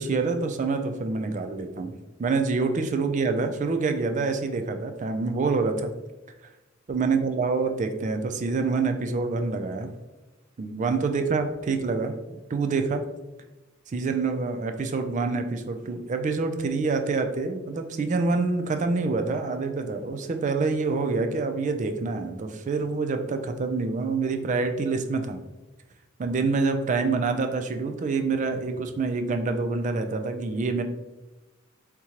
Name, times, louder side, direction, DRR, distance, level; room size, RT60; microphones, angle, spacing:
voice 1, 0.0-1.9 2.2-5.9 6.9-9.9 10.6-12.1 12.5-13.0 13.9-25.4 26.2-30.8, right 4 dB, 35° right, 7 dB, 0.3 m, -26 dB
3.6 x 2.9 x 2.9 m, 1.1 s
head